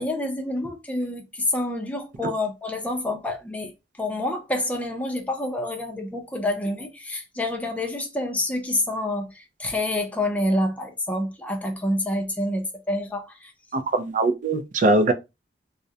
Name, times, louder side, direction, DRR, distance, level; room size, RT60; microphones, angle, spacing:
voice 1, 0.0-3.7 4.0-13.5, left 1 dB, 10° left, 0.5 m, -27 dB
voice 2, 13.7-15.1, right 2 dB, 45° right, 0.4 m, -21 dB
2.3 x 2.0 x 2.6 m
head